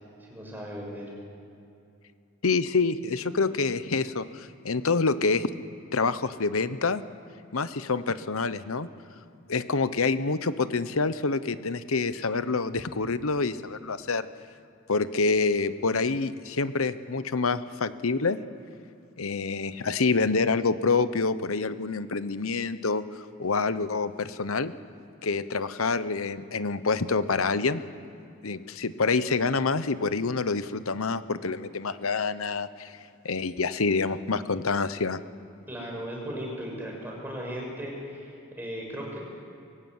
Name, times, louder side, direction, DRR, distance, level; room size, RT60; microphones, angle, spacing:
voice 1, 0.2-1.1 35.7-39.2, equal, 10° right, -2 dB, 6.2 m, -37 dB
voice 2, 2.4-5.5 5.9-7.0 7.5-8.9 9.5-14.3 14.9-18.4 19.2-24.7 25.2-27.8 28.4-33.0 33.2-35.2, left 4 dB, 80° left, 13 dB, 1.0 m, -27 dB
23.0 x 16.0 x 9.6 m, 2.7 s
head